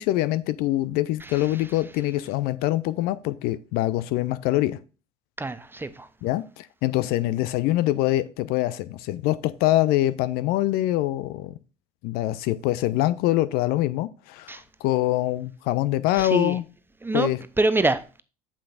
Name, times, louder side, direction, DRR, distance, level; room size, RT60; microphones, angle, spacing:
voice 1, 0.0-4.8 6.2-11.5 12.0-16.6 17.1-17.4, left 15 dB, 55° left, 0.5 m, -24 dB
voice 2, 1.2-1.7 5.4-6.1 14.5-14.6 16.1-16.6 17.0-18.2, right 2 dB, 10° right, 0.7 m, -26 dB
8.4 x 7.6 x 2.5 m
figure-of-eight pair, 60°, 19 cm